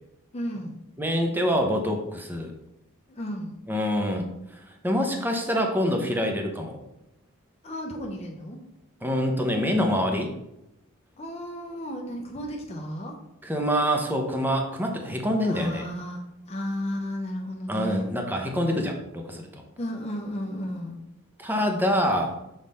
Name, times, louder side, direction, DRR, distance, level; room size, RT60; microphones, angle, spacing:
voice 1, 0.3-0.8 3.1-3.6 7.6-8.6 11.2-13.2 15.4-18.1 19.8-21.1, equal, 30° left, 0 dB, 0.7 m, -33 dB
voice 2, 1.0-2.5 3.7-6.8 9.0-10.3 13.4-15.8 17.7-19.6 21.4-22.4, equal, 10° right, 2 dB, 0.7 m, -26 dB
6.3 x 3.7 x 4.1 m, 0.87 s
head